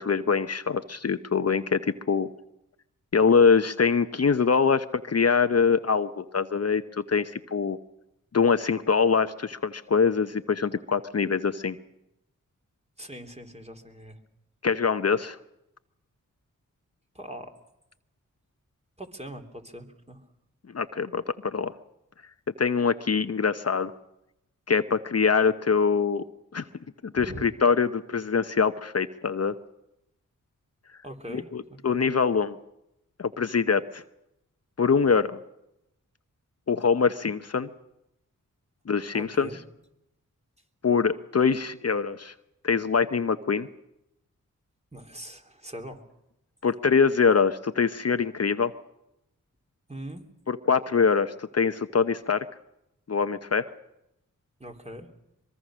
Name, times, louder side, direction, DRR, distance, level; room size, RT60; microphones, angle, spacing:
voice 1, 0.0-2.3 3.1-6.8 7.1-7.8 8.3-11.7 14.6-15.4 20.7-21.7 22.6-23.9 24.7-26.2 26.5-26.6 27.0-29.5 31.3-32.6 33.2-34.0 34.8-35.4 36.7-37.7 38.9-39.5 40.8-42.3 42.6-43.7 46.6-48.7 50.5-52.4 53.1-53.7, left 5 dB, 50° left, 10 dB, 0.9 m, -24 dB
voice 2, 13.0-14.2 17.1-17.5 19.0-20.2 27.1-27.5 31.0-32.0 39.1-39.6 44.9-46.1 49.9-50.2 54.6-55.1, right 1 dB, 20° right, 3 dB, 3.3 m, -41 dB
23.5 x 22.5 x 6.3 m, 0.86 s
cardioid pair, 45°, 33 cm